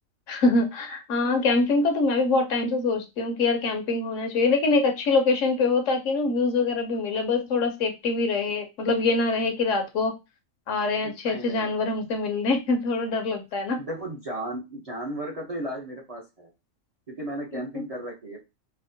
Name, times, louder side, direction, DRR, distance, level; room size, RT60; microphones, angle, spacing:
voice 1, 0.3-10.1 10.7-13.8, left 3 dB, 70° left, 4 dB, 1.0 m, -24 dB
voice 2, 11.0-11.7 13.8-16.5 17.2-18.4, right 1 dB, 35° right, -2 dB, 0.7 m, -35 dB
4.2 x 2.0 x 2.6 m, 0.25 s
omnidirectional pair, 1.4 m